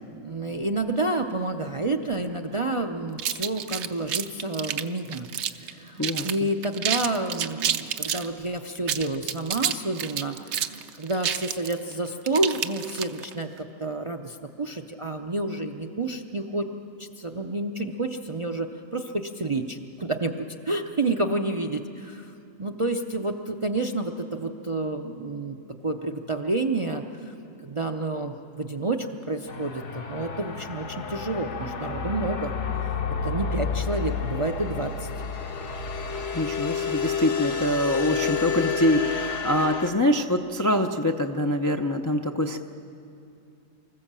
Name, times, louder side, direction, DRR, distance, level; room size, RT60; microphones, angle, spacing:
voice 1, 0.1-5.3 5.5-16.7 17.0-22.3 22.6-27.3 27.6-32.6 32.8-32.9 33.2-35.1, right 2 dB, 35° right, 4 dB, 0.5 m, -29 dB
sound 1, 3.2-5.7 6.0-6.4 6.6-8.3 8.8-13.3, right 9 dB, 65° right, 0.9 m, -29 dB
voice 2, 6.0-6.3 36.3-42.6, left 1 dB, 30° left, 4 dB, 0.3 m, -24 dB
sound 2, 29.5-39.9, left 6 dB, 60° left, 1.3 m, -30 dB
24.5 x 15.0 x 7.4 m, 2.6 s
omnidirectional pair, 1.4 m